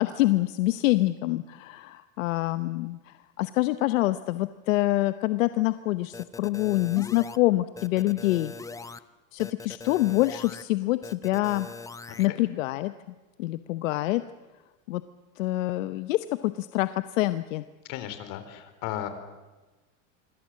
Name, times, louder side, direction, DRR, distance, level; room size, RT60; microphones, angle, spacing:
voice 1, 0.0-8.5 9.3-11.7 12.2-12.9 13.4-14.2 14.9-15.0 15.4-17.6, left 17 dB, 85° left, 12 dB, 1.0 m, -26 dB
sound 1, 6.1-7.4 7.8-9.0 9.4-10.6 11.0-12.3, left 4 dB, 10° left, 0.8 m, -41 dB
voice 2, 17.9-19.1, left 12 dB, 55° left, 10 dB, 4.1 m, -35 dB
26.0 x 25.0 x 7.6 m, 1.2 s
supercardioid pair, 130°, 38 cm